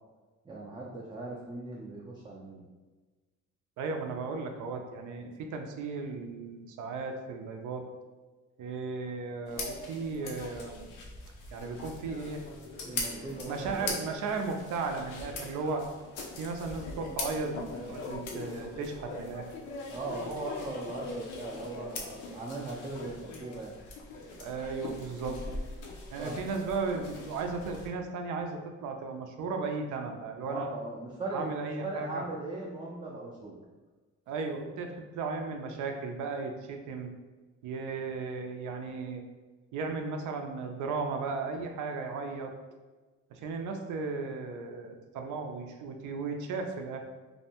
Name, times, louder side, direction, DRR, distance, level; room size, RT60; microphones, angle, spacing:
voice 1, 0.4-2.6 12.8-14.0 19.9-23.7 26.2-26.6 30.4-33.6, right 2 dB, 15° right, -4 dB, 0.4 m, -39 dB
voice 2, 3.8-7.9 8.6-10.9 11.5-12.5 13.0-15.8 16.4-19.5 24.4-25.4 26.1-30.7 31.3-32.2 34.3-37.1 37.6-39.2 39.7-42.5 43.3-47.0, right 4 dB, 80° right, 4 dB, 0.4 m, -35 dB
sound 1, 9.5-27.9, left 3 dB, 85° left, 0.6 m, -41 dB
2.6 x 2.1 x 2.8 m, 1.3 s
cardioid pair, 90°, 30 cm